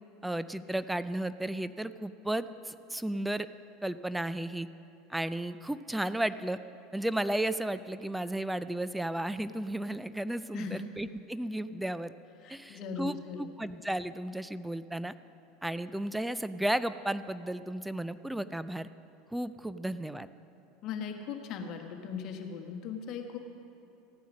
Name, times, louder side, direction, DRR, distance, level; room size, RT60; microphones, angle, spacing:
voice 1, 0.2-3.5 3.8-4.7 5.1-6.6 6.9-12.1 12.5-15.1 15.6-18.9 19.3-20.3, right 1 dB, 5° right, 13 dB, 0.4 m, -34 dB
voice 2, 12.4-13.5 20.8-23.4, left 6 dB, 50° left, 4 dB, 1.5 m, -39 dB
15.0 x 9.3 x 6.3 m, 2.9 s
hypercardioid pair, 85°, 0 cm